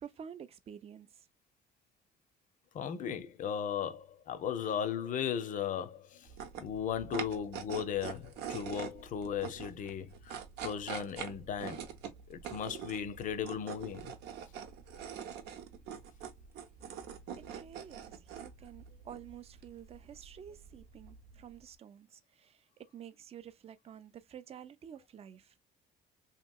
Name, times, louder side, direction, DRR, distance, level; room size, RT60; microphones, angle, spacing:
voice 1, 0.0-1.1 17.5-25.5, right 8 dB, 35° right, 0.4 m, -50 dB
voice 2, 2.7-6.3 6.6-11.9 12.3-14.1, left 8 dB, 50° left, 0.5 m, -36 dB
sound 1, 6.2-21.6, right 8 dB, 80° right, 0.8 m, -45 dB
2.9 x 2.8 x 2.2 m
cardioid pair, 110°, 17 cm